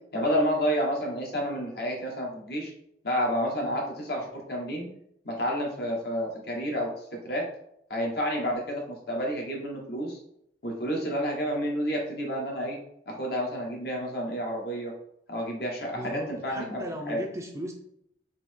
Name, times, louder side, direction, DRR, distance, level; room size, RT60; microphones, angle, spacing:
voice 1, 0.1-2.7 3.0-4.9 5.2-7.4 7.9-10.2 10.6-12.8 13.1-14.9 15.3-17.2, equal, 60° left, -1 dB, 1.2 m, -30 dB
voice 2, 15.9-17.7, equal, 15° right, 2 dB, 0.5 m, -37 dB
4.2 x 2.8 x 4.5 m, 0.75 s
head